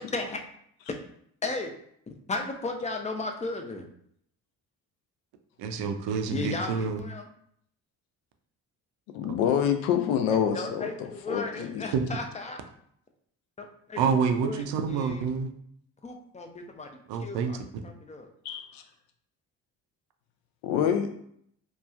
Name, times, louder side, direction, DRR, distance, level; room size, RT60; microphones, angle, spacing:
voice 1, 1.4-1.8 2.3-3.9 6.3-7.3 10.3-12.6 13.6-14.0 14.4-15.3 16.0-18.3, left 3 dB, 15° left, 4 dB, 0.4 m, -35 dB
voice 2, 5.6-7.0 11.9-12.0 14.0-15.5 17.1-17.5, right 6 dB, 60° right, 6 dB, 0.5 m, -27 dB
voice 3, 9.1-10.9 11.3-11.8 18.4-18.8 20.6-21.1, left 8 dB, 75° left, 6 dB, 0.5 m, -26 dB
2.9 x 2.2 x 2.3 m, 0.68 s
hypercardioid pair, 45°, 48 cm